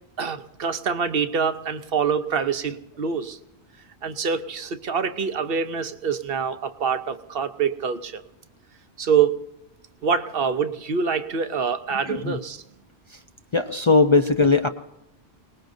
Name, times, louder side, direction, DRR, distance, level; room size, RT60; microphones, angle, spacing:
voice 1, 0.2-3.4 4.0-8.2 9.0-9.4 10.0-12.6, right 6 dB, 60° right, 10 dB, 0.9 m, -25 dB
voice 2, 12.1-12.4 13.1-13.2 13.5-14.7, left 3 dB, 35° left, 6 dB, 0.5 m, -19 dB
27.0 x 19.5 x 2.6 m, 0.88 s
omnidirectional pair, 1.1 m